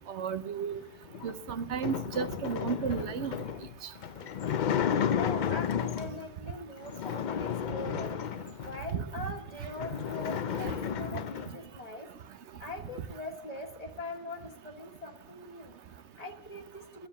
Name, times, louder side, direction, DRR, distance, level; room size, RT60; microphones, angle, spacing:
voice 1, 0.1-0.8 1.2-3.3 10.6-10.7, right 7 dB, 75° right, 12 dB, 1.1 m, -33 dB
sound 1, 1.1-6.3 6.8-8.9 9.4-9.5 9.7-11.6, left 8 dB, 50° left, 0.6 m, -33 dB
voice 2, 5.2-8.2 8.6-12.1 12.6-17.1, left 2 dB, 35° left, 5 dB, 1.5 m, -42 dB
12.0 x 7.3 x 9.9 m, 0.87 s
omnidirectional pair, 1.2 m